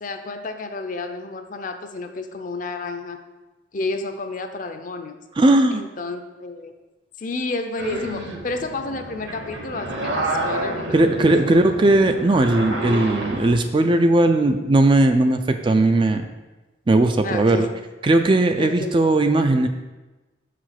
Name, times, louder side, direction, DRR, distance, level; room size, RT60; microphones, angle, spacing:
voice 1, 0.0-3.2 3.7-5.2 5.7-6.7 7.2-10.9 11.3-11.4 17.2-17.7 18.6-18.9, left 3 dB, 40° left, 7 dB, 0.6 m, -31 dB
voice 2, 5.4-5.8 10.9-16.3 16.9-17.7 18.0-19.7, right 2 dB, 25° right, 7 dB, 0.3 m, -18 dB
sound 1, 7.8-13.6, right 1 dB, 60° right, 1.2 m, -29 dB
6.2 x 5.0 x 5.8 m, 1.1 s
head